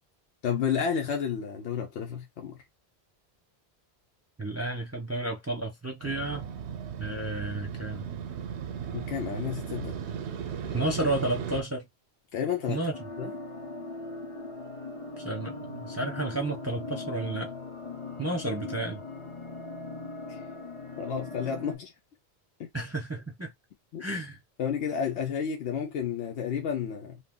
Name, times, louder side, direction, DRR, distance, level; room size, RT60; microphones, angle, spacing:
voice 1, 0.4-2.6 8.9-9.9 12.3-12.8 13.2-13.4 20.3-20.4 21.0-21.9 22.6-22.7 23.9-24.0 24.6-27.2, left 7 dB, 90° left, 0.9 m, -31 dB
voice 2, 4.4-6.4 7.0-8.1 10.7-11.9 12.7-12.9 15.2-17.5 18.2-19.0 22.7-23.5 24.0-24.4, right 2 dB, 20° right, 0.5 m, -32 dB
Motorcycle, 6.0-11.6, right 8 dB, 90° right, 0.9 m, -36 dB
sound 1, 12.9-21.8, left 3 dB, 35° left, 0.7 m, -40 dB
2.6 x 2.3 x 3.6 m
omnidirectional pair, 1.1 m